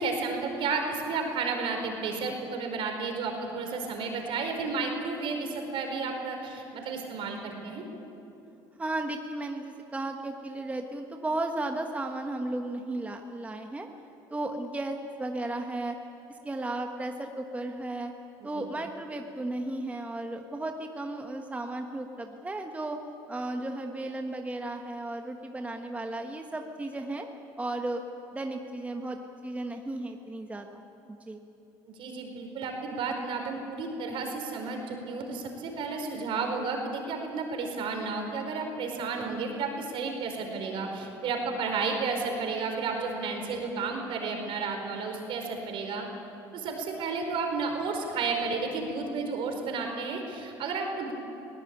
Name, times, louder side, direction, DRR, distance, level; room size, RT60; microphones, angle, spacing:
voice 1, 0.0-7.8 18.5-18.7 31.8-46.1 46.5-51.1, right 4 dB, 60° right, 4 dB, 4.6 m, -32 dB
voice 2, 8.8-13.9 14.3-16.0 16.3-18.1 18.4-23.0 23.3-27.3 27.6-28.0 28.3-30.8 31.1-31.4, right 2 dB, 15° right, 4 dB, 1.4 m, -34 dB
21.0 x 18.0 x 8.8 m, 2.9 s
supercardioid pair, 85°, 10 cm